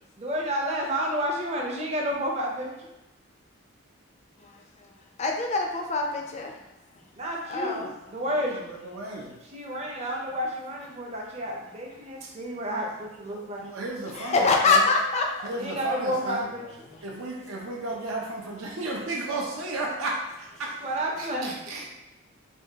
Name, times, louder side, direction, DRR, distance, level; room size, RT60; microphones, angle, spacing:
voice 1, 0.2-2.9 7.2-8.7 9.5-13.6 15.5-16.6 20.8-21.5, equal, 30° right, -1 dB, 0.5 m, -30 dB
voice 2, 5.2-6.6 7.5-7.9 14.1-15.5 16.9-17.0, left 3 dB, 30° left, 2 dB, 0.4 m, -24 dB
voice 3, 8.5-9.3 12.2-12.3 13.3-14.9 15.4-16.5 17.0-20.8 21.2-21.9, right 2 dB, 75° right, -2 dB, 0.5 m, -34 dB
3.4 x 2.3 x 2.7 m, 0.96 s
head